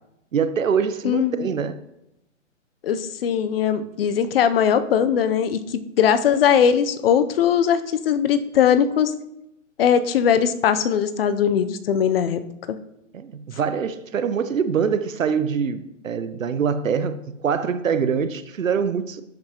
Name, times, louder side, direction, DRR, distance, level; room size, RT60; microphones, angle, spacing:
voice 1, 0.3-1.8 13.1-19.2, right 6 dB, 85° right, 13 dB, 0.9 m, -24 dB
voice 2, 1.0-1.5 2.8-9.1 9.8-12.4, left 8 dB, 50° left, 12 dB, 0.7 m, -20 dB
10.5 x 7.8 x 2.9 m, 0.86 s
hypercardioid pair, 135°, 38 cm